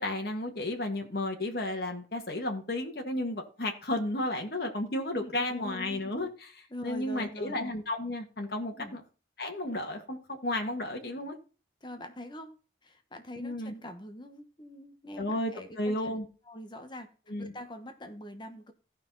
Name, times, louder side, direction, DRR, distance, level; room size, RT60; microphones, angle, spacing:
voice 1, 0.0-9.0 9.4-11.4 13.4-13.7 15.2-16.3 17.3-17.5, left 1 dB, 55° left, 3 dB, 1.8 m, -33 dB
voice 2, 5.2-6.0 6.7-7.6 8.7-9.0 11.8-12.5 12.8-16.2 16.4-17.1 17.4-18.7, equal, 25° left, 7 dB, 1.1 m, -44 dB
15.5 x 5.8 x 4.0 m, 0.35 s
head